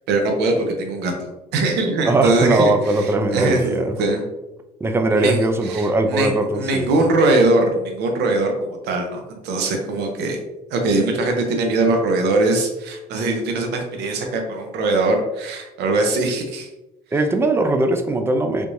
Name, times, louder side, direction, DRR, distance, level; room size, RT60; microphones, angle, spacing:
voice 1, 0.1-4.2 5.1-10.4 10.7-16.7, right 2 dB, 80° right, 3 dB, 0.7 m, -21 dB
voice 2, 2.1-3.9 4.8-6.9 17.1-18.7, right 2 dB, 15° right, 6 dB, 0.4 m, -20 dB
3.4 x 3.1 x 2.6 m, 0.99 s
cardioid pair, 110°, 17 cm